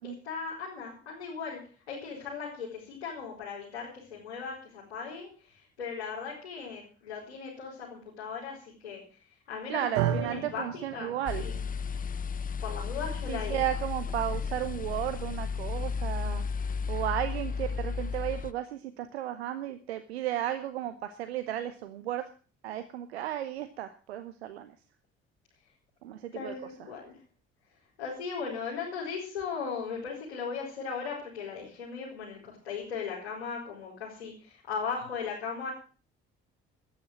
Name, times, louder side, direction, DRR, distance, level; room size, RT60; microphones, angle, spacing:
voice 1, 0.0-1.6 1.9-9.0 9.5-10.7 10.9-11.6 12.6-13.6 14.1-14.2 17.4-17.5 26.3-27.2 28.0-35.7, left 5 dB, 75° left, -4 dB, 4.7 m, -38 dB
voice 2, 9.7-11.4 13.3-16.4 16.9-22.2 22.6-24.7 26.0-26.5, right 12 dB, 75° right, 10 dB, 0.9 m, -34 dB
sound 1, 9.9-18.2, right 10 dB, 60° right, 1.3 m, -38 dB
sound 2, 11.3-18.5, left 5 dB, 25° left, 0.7 m, -33 dB
13.5 x 9.5 x 7.5 m, 0.39 s
figure-of-eight pair, 50°, 32 cm